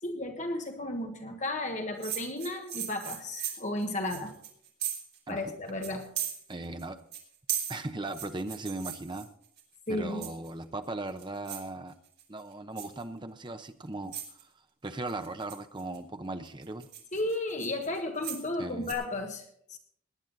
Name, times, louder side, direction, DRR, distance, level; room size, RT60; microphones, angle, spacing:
voice 1, 0.0-4.3 5.3-6.1 9.9-10.3 17.1-19.8, left 2 dB, 35° left, 4 dB, 1.4 m, -34 dB
sound 1, 2.0-5.2 5.5-5.6 5.8-6.8 7.1-9.6 10.2-10.6 11.1-11.7 12.1-12.4 12.8-13.0 13.7-13.8 14.1-14.4 15.1-16.0 16.5-18.5 18.8-18.9, right 9 dB, 50° right, 3.3 m, -37 dB
voice 2, 6.5-7.0 7.7-9.3 9.9-11.9 12.3-14.5 14.8-16.9 18.6-19.0, right 2 dB, 20° right, 8 dB, 0.8 m, -38 dB
18.5 x 10.5 x 4.0 m, 0.66 s
head